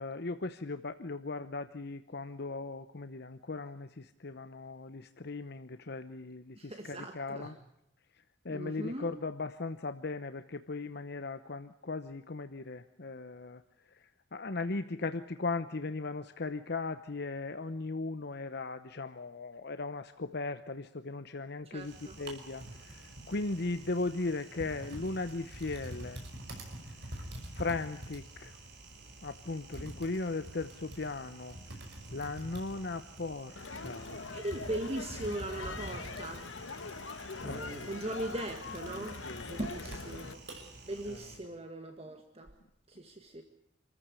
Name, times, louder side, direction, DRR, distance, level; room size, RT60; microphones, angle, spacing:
voice 1, 0.0-7.6 8.4-13.6 13.9-26.2 27.1-27.2 27.5-28.5 29.2-31.8 32.1-34.2 37.4-37.9 39.2-39.5 41.0-41.3, left 3 dB, 60° left, 10 dB, 0.9 m, -38 dB
voice 2, 6.6-7.5 8.5-9.1 21.7-22.2 34.3-36.5 37.4-40.4 40.8-42.5 42.9-43.4, right 1 dB, 30° right, 5 dB, 1.8 m, -39 dB
Typing, 21.8-41.4, right 1 dB, 60° right, 5.6 m, -47 dB
Crowd, 33.6-40.3, left 4 dB, 90° left, 1.6 m, -43 dB
27.0 x 14.5 x 9.7 m, 0.76 s
head